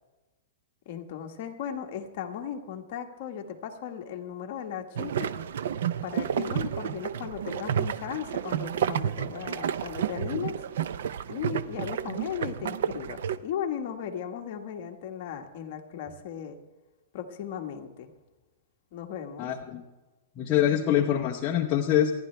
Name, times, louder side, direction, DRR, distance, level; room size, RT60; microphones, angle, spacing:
voice 1, 0.8-5.3 6.0-10.6 11.3-16.6 17.1-18.1 18.9-19.5, left 8 dB, 40° left, 3 dB, 1.5 m, -36 dB
sound 1, 5.0-13.4, right 9 dB, 60° right, 0.6 m, -31 dB
voice 2, 19.4-19.8 20.4-22.1, left 10 dB, 20° left, -2 dB, 0.9 m, -24 dB
27.0 x 10.5 x 3.4 m, 1.2 s
hypercardioid pair, 175°, 0 cm